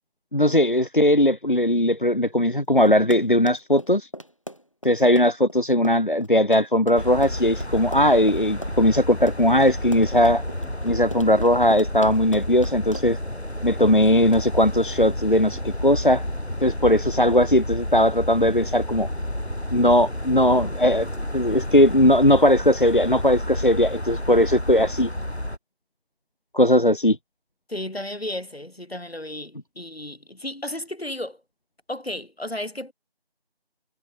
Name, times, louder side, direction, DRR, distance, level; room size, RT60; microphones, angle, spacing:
voice 1, 0.3-4.1 4.8-10.4 10.8-13.2 13.6-16.2 16.6-19.1 19.7-21.1 21.3-25.1 26.5-27.2, left 1 dB, 50° left, 1.1 m, -19 dB
Run, 2.9-13.3, equal, 30° left, 6.8 m, -38 dB
sound 1, 7.0-25.6, left 1 dB, 90° left, 4.5 m, -31 dB
sound 2, 10.5-21.9, equal, 55° right, 6.1 m, -43 dB
voice 2, 27.7-31.4 31.9-32.9, left 1 dB, 70° left, 2.6 m, -33 dB
figure-of-eight pair, 180°, 32 cm